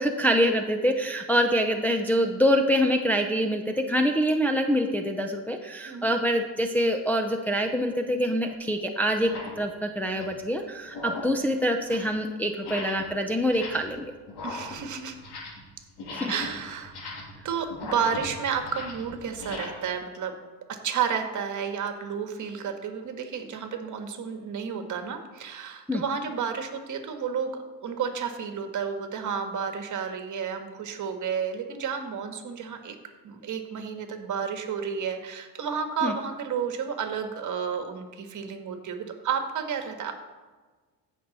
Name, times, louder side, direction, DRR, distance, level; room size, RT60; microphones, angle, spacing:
voice 1, 0.0-9.3 9.6-14.1 16.1-16.3 25.9-26.0 36.0-36.1, equal, 5° left, 2 dB, 0.6 m, -25 dB
sound 1, 7.6-7.8 8.5-8.6 9.1-9.6 10.0-10.5 10.9-11.4 11.7-12.2 12.6-13.1 13.4-14.0 14.3-15.7 16.0-19.7, left 3 dB, 70° left, 2.6 m, -39 dB
voice 2, 14.4-15.1 16.3-16.9 17.4-20.4 20.7-32.9 33.2-40.1, right 7 dB, 45° right, 6 dB, 1.5 m, -31 dB
15.5 x 6.3 x 4.1 m, 1.3 s
cardioid pair, 110°, 41 cm